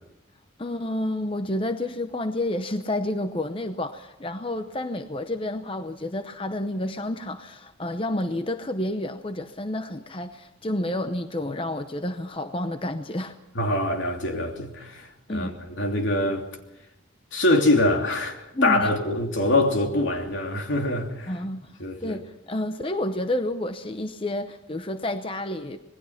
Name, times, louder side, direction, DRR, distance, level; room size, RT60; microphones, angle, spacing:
voice 1, 0.6-13.4 15.3-15.5 18.5-18.9 21.3-21.7 22.0-26.0, left 1 dB, 25° left, 0.8 m, -30 dB
voice 2, 13.5-16.4 17.3-21.3 21.8-22.2, left 1 dB, 75° left, 3.0 m, -24 dB
26.5 x 20.0 x 5.8 m
head